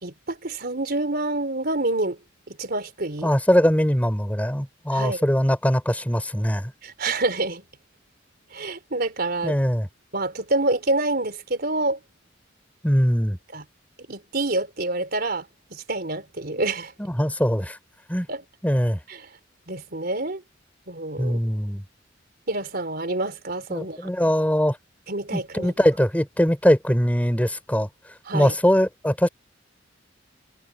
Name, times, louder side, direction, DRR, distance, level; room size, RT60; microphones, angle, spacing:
voice 1, 0.0-2.2 2.5-3.3 4.9-5.2 6.8-7.6 8.5-9.6 10.1-12.0 13.5-13.6 14.1-16.9 18.3-18.4 19.1-19.2 19.7-20.4 20.9-21.4 22.5-24.1 25.1-25.7 28.3-28.6, right 2 dB, 55° right, 4.0 m, -27 dB
voice 2, 3.2-6.7 9.4-9.9 12.8-13.4 17.1-17.8 18.1-18.3 18.6-19.0 21.2-21.8 23.7-24.8 25.3-27.9 28.3-29.3, equal, 10° left, 7.0 m, -21 dB
head